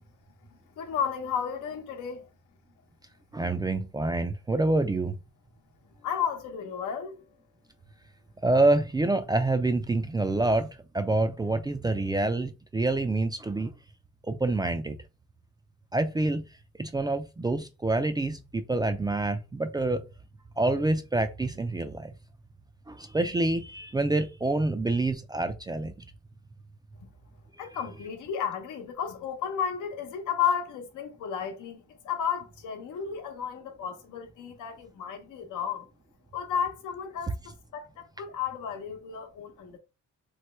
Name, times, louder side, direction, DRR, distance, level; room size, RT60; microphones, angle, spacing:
voice 1, 0.8-2.3 6.0-7.2 27.6-35.9 36.3-37.4 37.7-39.8, left 7 dB, 85° left, 0.8 m, -33 dB
voice 2, 3.3-5.1 8.4-10.7 10.9-13.7 14.3-15.0 15.9-16.4 16.8-20.0 20.6-22.1 22.9-25.9, right 2 dB, 15° right, 0.3 m, -27 dB
3.1 x 2.1 x 3.1 m
cardioid pair, 90°, 30 cm